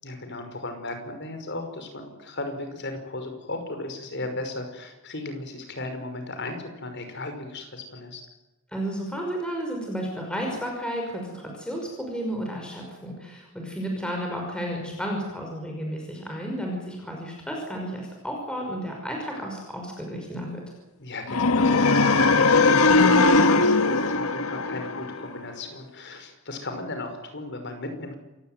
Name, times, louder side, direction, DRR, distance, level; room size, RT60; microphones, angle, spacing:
voice 1, 0.0-8.2 21.0-28.1, left 2 dB, 50° left, 6 dB, 5.6 m, -36 dB
voice 2, 8.7-20.6, equal, 5° left, 0 dB, 5.7 m, -32 dB
sound 1, 21.3-25.4, left 3 dB, 80° left, 1.5 m, -19 dB
28.0 x 16.5 x 9.5 m, 1.0 s
head